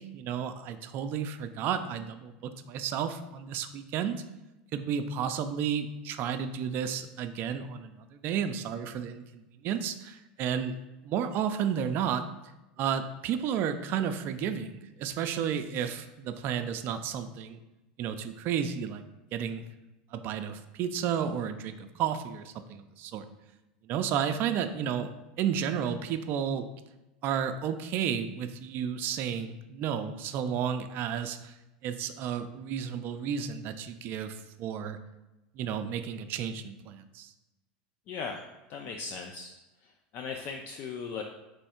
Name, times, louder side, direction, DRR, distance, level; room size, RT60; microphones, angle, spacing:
voice 1, 0.0-4.1 4.7-10.8 11.0-12.2 12.8-17.6 18.0-19.0 19.3-19.6 20.1-23.2 23.9-25.1 25.4-26.7 27.2-31.5 31.8-35.0 35.6-37.3, right 8 dB, 45° right, 9 dB, 0.4 m, -32 dB
voice 2, 38.1-38.4 38.7-39.5 39.8-41.2, left 5 dB, 45° left, 3 dB, 0.4 m, -38 dB
3.5 x 3.1 x 4.3 m, 1.0 s
supercardioid pair, 115°, 5 cm